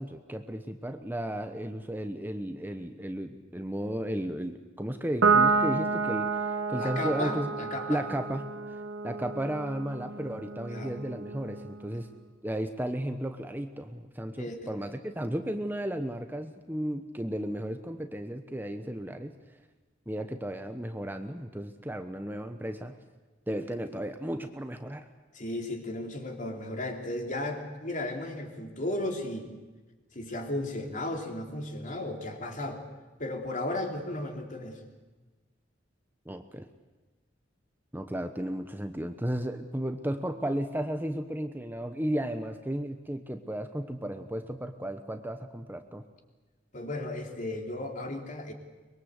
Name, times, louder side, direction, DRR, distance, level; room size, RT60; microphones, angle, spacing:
voice 1, 0.0-7.5 7.9-8.8 9.0-12.1 12.4-19.4 20.1-23.0 23.5-25.1 36.3-36.7 37.9-46.0, right 1 dB, 10° right, 7 dB, 1.0 m, -34 dB
Piano, 5.2-11.9, right 4 dB, 85° right, 1.9 m, -29 dB
voice 2, 6.8-8.0 10.7-10.9 14.4-14.6 25.3-29.5 30.1-32.8 33.2-34.8 46.7-48.5, left 1 dB, 45° left, 3 dB, 3.3 m, -35 dB
24.0 x 22.5 x 8.1 m, 1.2 s
head